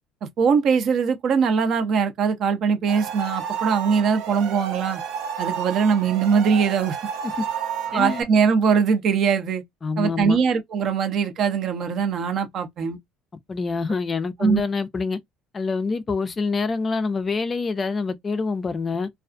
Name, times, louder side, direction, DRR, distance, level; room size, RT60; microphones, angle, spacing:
voice 1, 0.4-5.0 5.4-7.0 7.9-9.6 10.0-13.0 14.4-14.6, right 6 dB, 50° right, 0.6 m, -21 dB
sound 1, 2.9-8.2, right 8 dB, 75° right, 0.9 m, -31 dB
voice 2, 7.9-8.2 9.8-10.4 13.5-15.2 15.5-19.1, left 4 dB, 25° left, 0.3 m, -26 dB
2.3 x 2.3 x 2.4 m
cardioid pair, 120°, 0 cm